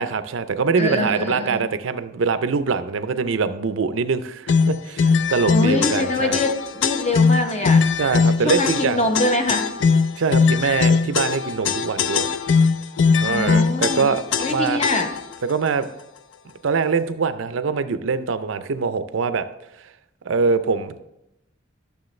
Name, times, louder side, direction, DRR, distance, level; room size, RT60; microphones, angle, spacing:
voice 1, 0.0-6.4 8.0-9.1 10.2-12.4 13.2-14.2 14.5-14.8 15.4-15.9 16.6-19.5 20.2-21.0, right 5 dB, 80° right, 11 dB, 0.5 m, -23 dB
voice 2, 0.8-1.6 5.5-7.8 8.4-9.7 13.2-14.1 14.4-15.1, left 2 dB, 35° left, 4 dB, 0.9 m, -24 dB
sound 1, 4.5-15.3, left 5 dB, 65° left, 0.4 m, -20 dB
11.5 x 6.9 x 3.2 m, 0.86 s
head